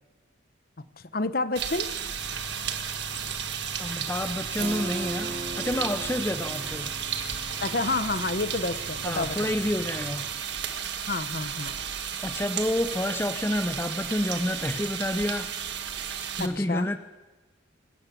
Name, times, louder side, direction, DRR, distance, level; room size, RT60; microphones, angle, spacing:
voice 1, 1.1-1.9 7.6-9.5 11.1-11.8 16.4-16.9, left 3 dB, 50° left, 13 dB, 1.0 m, -29 dB
sound 1, 1.6-16.5, right 8 dB, 60° right, 1.6 m, -33 dB
Engine, 2.1-10.3, left 1 dB, 70° left, 4.8 m, -44 dB
voice 2, 3.8-6.9 9.0-10.3 12.2-15.5 16.4-17.0, left 1 dB, 10° left, 9 dB, 0.6 m, -29 dB
Keyboard (musical), 4.6-10.1, right 2 dB, 35° right, 1.4 m, -41 dB
24.0 x 13.0 x 8.4 m, 1.2 s
head